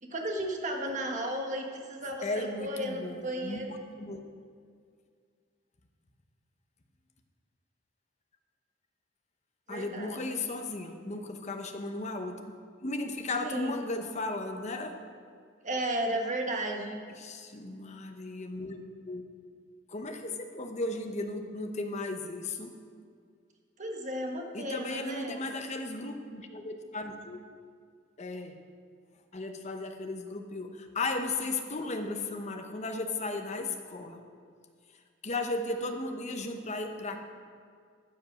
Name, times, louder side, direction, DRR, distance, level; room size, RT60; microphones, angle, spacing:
voice 1, 0.0-3.7 9.7-10.2 13.4-13.8 15.6-17.0 23.8-25.5, right 1 dB, 40° right, 2 dB, 1.3 m, -34 dB
voice 2, 2.2-4.2 9.7-12.4 12.8-15.0 17.2-18.8 19.0-19.2 19.9-22.7 24.5-27.4 28.2-28.5 29.3-34.2 35.2-37.2, left 2 dB, 35° left, 5 dB, 0.9 m, -35 dB
14.5 x 5.3 x 6.3 m, 2.1 s
head